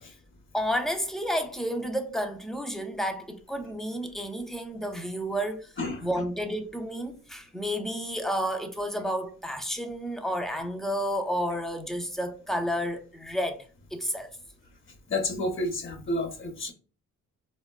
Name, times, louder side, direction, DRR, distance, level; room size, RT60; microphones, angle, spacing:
voice 1, 0.5-5.7 6.0-14.3, equal, ahead, 0.3 m, -31 dB
voice 2, 5.8-6.1 15.1-16.7, left 2 dB, 40° left, 0.8 m, -30 dB
3.9 x 2.1 x 2.2 m
cardioid pair, 105°, 31 cm